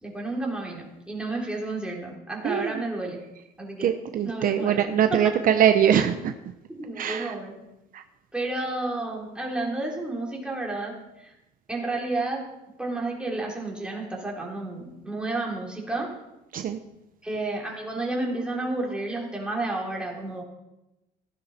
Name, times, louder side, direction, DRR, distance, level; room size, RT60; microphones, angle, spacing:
voice 1, 0.0-3.2 3.6-3.9 4.2-5.3 6.8-7.5 8.3-11.3 11.7-12.4 12.8-16.1 17.2-20.4, right 2 dB, 5° right, -2 dB, 3.6 m, -31 dB
voice 2, 3.8-6.3 7.0-7.3 7.9-8.0 16.5-16.8, right 9 dB, 55° right, 7 dB, 0.8 m, -22 dB
15.5 x 10.5 x 4.3 m, 0.95 s
cardioid pair, 110°, 17 cm